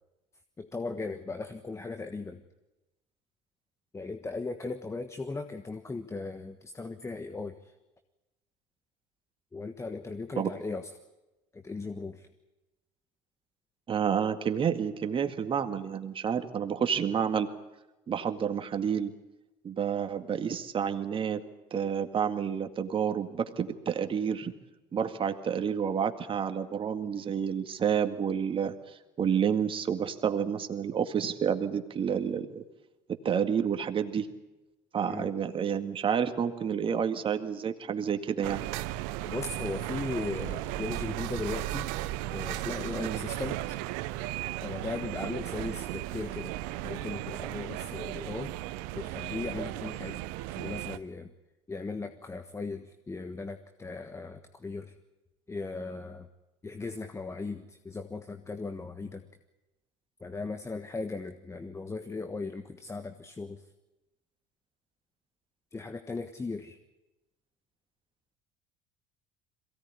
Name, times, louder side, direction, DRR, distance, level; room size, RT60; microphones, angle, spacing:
voice 1, 0.6-2.4 3.9-7.7 9.5-10.9 11.5-12.3 35.0-35.3 39.2-41.9 42.3-43.8 44.6-46.6 46.8-48.5 48.9-50.2 50.5-51.3 51.7-54.9 55.5-56.3 56.6-59.2 60.2-63.6 65.7-66.8, left 3 dB, 20° left, 8 dB, 1.4 m, -37 dB
voice 2, 13.9-17.5 18.1-19.1 19.6-21.4 21.7-24.5 24.9-28.7 29.2-32.6 33.2-34.3 34.9-38.6 43.0-43.2, right 7 dB, 35° right, 7 dB, 2.0 m, -29 dB
sound 1, 38.4-51.0, right 16 dB, 70° right, 0.9 m, -36 dB
22.5 x 17.5 x 9.7 m, 1.0 s
hypercardioid pair, 80°, 15 cm